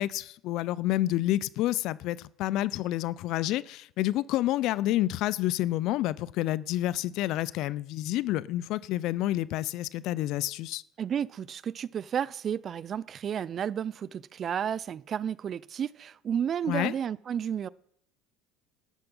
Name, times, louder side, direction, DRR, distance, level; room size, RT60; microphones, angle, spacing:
voice 1, 0.0-10.8 16.7-16.9, left 15 dB, 65° left, 0.5 m, -29 dB
voice 2, 11.0-17.7, right 8 dB, 40° right, 0.4 m, -32 dB
12.5 x 10.0 x 5.5 m
supercardioid pair, 90°, 0 cm